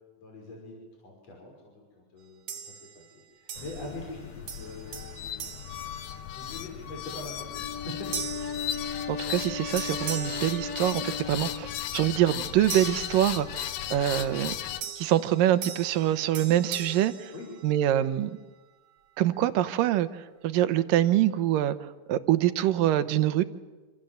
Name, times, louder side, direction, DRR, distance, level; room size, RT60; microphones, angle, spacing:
voice 1, 0.2-2.4 2.9-5.4 6.3-8.1 8.5-8.6 10.7-10.9 17.3-17.5, left 2 dB, 50° left, -1 dB, 6.7 m, -43 dB
sound 1, 2.5-3.1 3.5-4.2 4.5-6.6 7.1-7.4 8.1-9.5 9.8-11.4 12.7-13.9 14.8-18.1, right 7 dB, 60° right, 2.9 m, -41 dB
sound 2, 3.6-14.8, left 10 dB, 70° left, 2.3 m, -36 dB
Wind instrument woodwind instrument, 7.4-12.0, left 5 dB, 25° left, 4.3 m, -37 dB
voice 2, 9.1-14.5 15.0-17.3 17.6-18.3 19.2-20.1 20.4-21.8 22.1-23.4, right 12 dB, 80° right, 12 dB, 2.7 m, -25 dB
27.5 x 27.0 x 7.9 m, 1.3 s
omnidirectional pair, 3.9 m